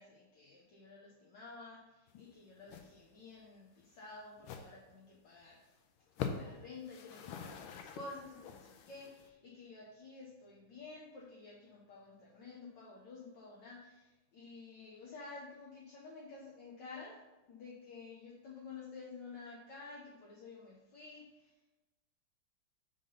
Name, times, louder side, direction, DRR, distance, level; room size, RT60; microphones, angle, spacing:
voice 1, 0.0-5.6 6.3-17.2 17.5-21.5, left 3 dB, 60° left, -4 dB, 1.6 m, -51 dB
sound 1, 2.1-2.3 2.6-2.9 3.2-3.3 3.8-3.9 4.4-4.7 5.2-5.3 5.5-5.7 6.1-6.5 6.8-9.3, left 7 dB, 80° left, 1.5 m, -44 dB
7.6 x 3.7 x 5.5 m, 1.0 s
omnidirectional pair, 2.3 m